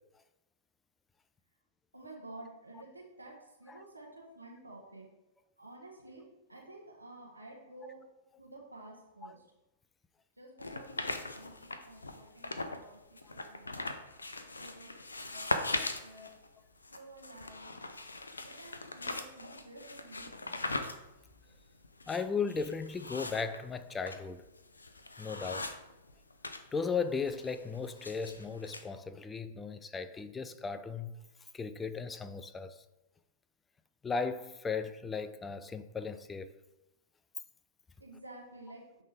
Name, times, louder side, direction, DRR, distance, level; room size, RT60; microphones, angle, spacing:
voice 1, 1.9-5.1 5.6-8.0 8.4-9.5 10.4-13.0 13.3-13.9 14.6-16.3 16.9-17.7 18.4-20.6 38.0-38.8, right 2 dB, 90° right, 1.3 m, -51 dB
sound 1, 10.6-12.8 13.2-26.6 26.9-28.8, left 2 dB, 80° left, 0.5 m, -40 dB
voice 2, 22.1-24.4 25.2-25.7 26.7-31.1 31.5-32.7 34.0-36.5, left 5 dB, 15° left, 0.4 m, -36 dB
9.2 x 3.5 x 3.5 m
figure-of-eight pair, 100°, 0 cm